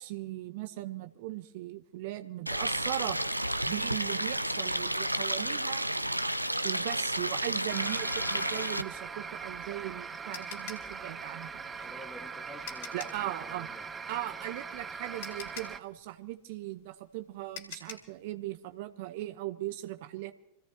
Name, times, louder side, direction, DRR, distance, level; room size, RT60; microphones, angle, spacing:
voice 1, 0.0-3.2 3.7-5.8 6.6-11.9 12.9-13.7 14.1-20.3, right 16 dB, 50° right, 10 dB, 0.9 m, -38 dB
Stream, 2.5-8.8, right 1 dB, 85° right, 0.5 m, -31 dB
sound 1, 7.7-15.8, right 5 dB, 15° right, 0.7 m, -41 dB
sound 2, 9.4-13.3 14.7-14.8 15.2-18.2, left 6 dB, 55° left, 2.8 m, -46 dB
voice 2, 11.8-13.8, left 1 dB, 5° left, 2 dB, 1.7 m, -50 dB
27.0 x 16.5 x 2.8 m, 0.87 s
figure-of-eight pair, 90°, 0 cm